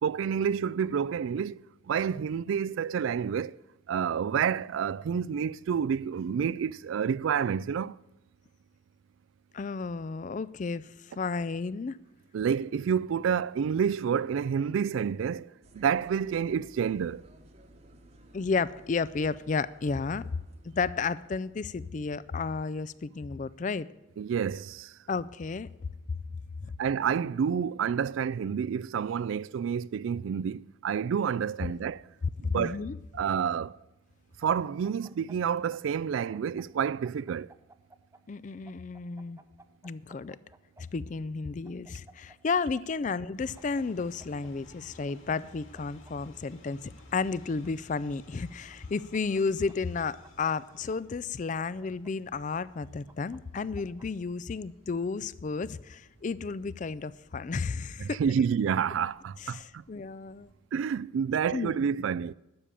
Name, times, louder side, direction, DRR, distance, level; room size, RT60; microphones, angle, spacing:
voice 1, 0.0-3.6 3.9-8.0 12.3-15.5 15.7-17.3 24.2-24.9 26.8-32.0 32.4-32.8 33.1-33.8 34.4-37.5 58.0-59.8 60.7-62.3, right 7 dB, 75° right, 0.3 m, -29 dB
voice 2, 9.5-12.0 18.3-20.2 20.6-23.9 25.1-25.7 26.6-26.7 32.4-33.0 38.3-39.4 39.8-40.4 40.8-58.2 59.4-60.5 61.5-61.8, left 4 dB, 40° left, 0.4 m, -32 dB
sound 1, 15.6-23.4, right 1 dB, 35° right, 1.1 m, -57 dB
sound 2, 34.4-36.0 36.3-38.2 38.7-40.8 41.6-42.8 43.1-43.2 43.6-44.5 45.1-46.1 46.7-47.7 48.5-49.4 49.7-51.0 51.6-52.6 53.1-54.1, right 2 dB, 15° right, 0.5 m, -56 dB
sound 3, 43.4-60.5, left 1 dB, 80° left, 4.2 m, -57 dB
12.0 x 6.8 x 8.7 m
head